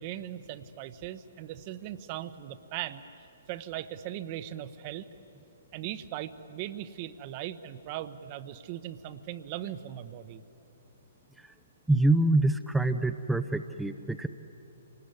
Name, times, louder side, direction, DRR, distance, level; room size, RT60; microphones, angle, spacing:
voice 1, 0.0-3.0 3.5-5.1 5.7-10.4, right 12 dB, 35° right, 12 dB, 0.9 m, -39 dB
voice 2, 11.9-14.3, right 2 dB, 5° right, 7 dB, 0.6 m, -25 dB
26.0 x 19.5 x 9.7 m, 2.9 s
figure-of-eight pair, 125°, 0 cm